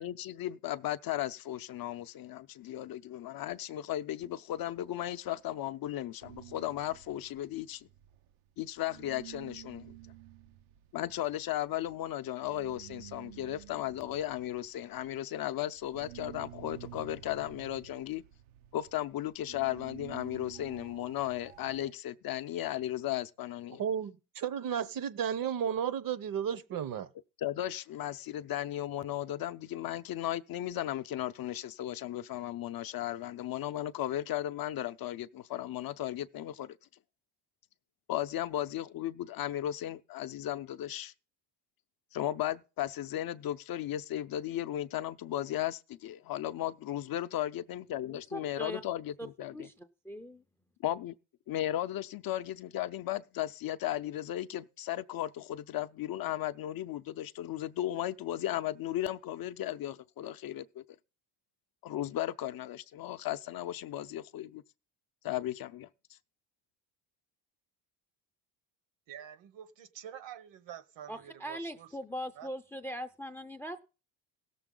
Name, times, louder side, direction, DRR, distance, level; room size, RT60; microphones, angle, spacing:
voice 1, 0.0-7.9 8.6-9.9 10.9-18.2 18.7-23.8 27.4-36.8 38.1-41.1 42.1-49.7 50.8-51.1 51.5-60.8 61.8-64.6 65.2-65.9, left 13 dB, 50° left, 0.6 m, -35 dB
sound 1, 6.2-8.6 8.8-21.9, right 14 dB, 85° right, 0.9 m, -51 dB
voice 2, 23.8-27.1, right 8 dB, 45° right, 0.8 m, -33 dB
voice 3, 48.0-48.8 49.2-49.7 50.1-50.4 71.1-73.8, equal, 5° left, 0.5 m, -41 dB
voice 4, 69.1-71.9 72.4-72.5, right 9 dB, 65° right, 1.1 m, -47 dB
17.0 x 7.0 x 3.8 m
cardioid pair, 130°, 47 cm